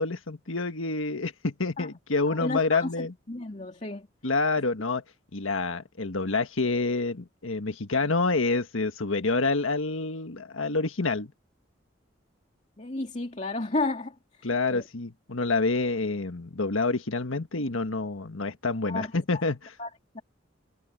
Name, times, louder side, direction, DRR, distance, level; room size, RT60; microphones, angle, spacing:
voice 1, 0.0-3.1 4.2-5.0 5.3-11.3 14.4-19.7, left 3 dB, 85° left, 1.6 m, -28 dB
voice 2, 2.3-4.1 12.8-14.1 14.7-14.8 18.9-19.1 19.8-19.9 20.1-20.2, left 2 dB, 35° left, 2.4 m, -32 dB
head